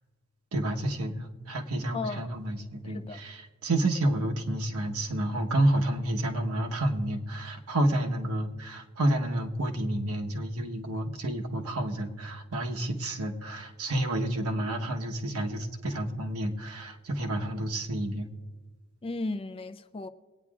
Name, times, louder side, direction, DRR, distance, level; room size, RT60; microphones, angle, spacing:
voice 1, 0.5-18.3, right 1 dB, 80° right, 1.1 m, -30 dB
voice 2, 1.9-2.3 2.8-3.2 19.0-20.1, left 3 dB, 25° left, 0.4 m, -35 dB
23.0 x 9.5 x 2.4 m
head